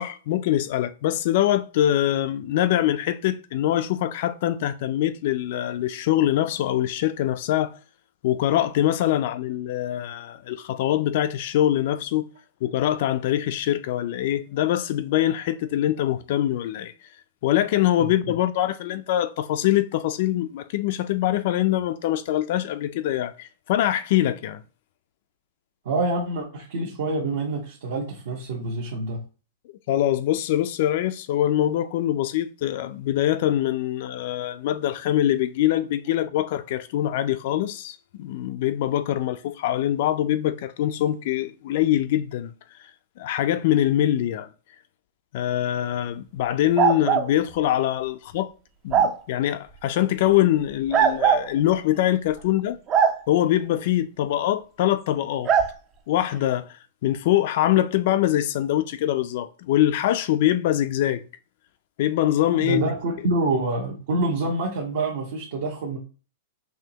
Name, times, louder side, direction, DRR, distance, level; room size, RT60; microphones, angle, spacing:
voice 1, 0.0-7.7 8.2-12.3 12.6-16.9 17.4-24.6 29.9-42.5 43.2-44.5 45.3-48.5 48.8-52.8 53.3-55.5 56.1-61.2 62.0-62.8, left 12 dB, 50° left, 0.3 m, -23 dB
voice 2, 25.8-29.2 62.5-66.0, right 2 dB, 65° right, 1.1 m, -26 dB
sound 1, 46.8-47.3 48.9-49.2 50.9-51.5 52.9-53.1 55.5-55.7, right 7 dB, 25° right, 0.4 m, -19 dB
5.5 x 3.0 x 2.8 m
supercardioid pair, 165°, 0 cm